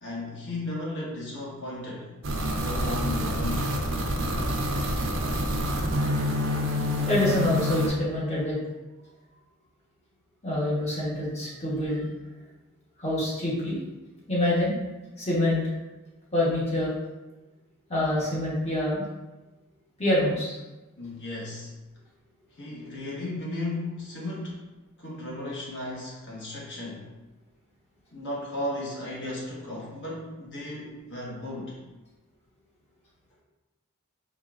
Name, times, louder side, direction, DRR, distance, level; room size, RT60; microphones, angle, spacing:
voice 1, 0.0-2.1 2.4-3.8 21.0-21.7 22.5-24.6 25.0-27.1 28.1-31.8, left 2 dB, 55° left, -5 dB, 1.2 m, -35 dB
sound 1, 2.2-7.9, equal, 60° right, 0.6 m, -27 dB
voice 2, 7.1-8.6 10.4-12.1 13.0-13.8 14.3-14.7 15.2-15.6 16.3-16.9 17.9-19.0 20.0-20.6, left 1 dB, 30° left, -6 dB, 1.1 m, -26 dB
4.0 x 3.4 x 2.5 m, 1.1 s
head